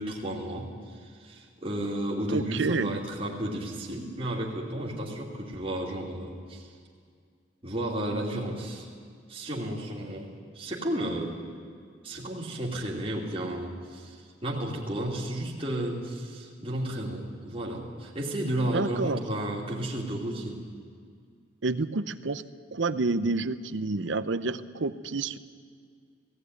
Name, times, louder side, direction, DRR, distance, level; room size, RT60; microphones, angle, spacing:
voice 1, 0.0-6.7 7.6-8.9 9.3-11.4 12.0-20.6, right 1 dB, 30° right, -3 dB, 2.8 m, -33 dB
voice 2, 2.3-3.0 18.7-19.2 21.6-22.4 22.7-25.4, right 3 dB, 75° right, 14 dB, 0.8 m, -29 dB
18.0 x 15.5 x 9.6 m, 2.1 s
head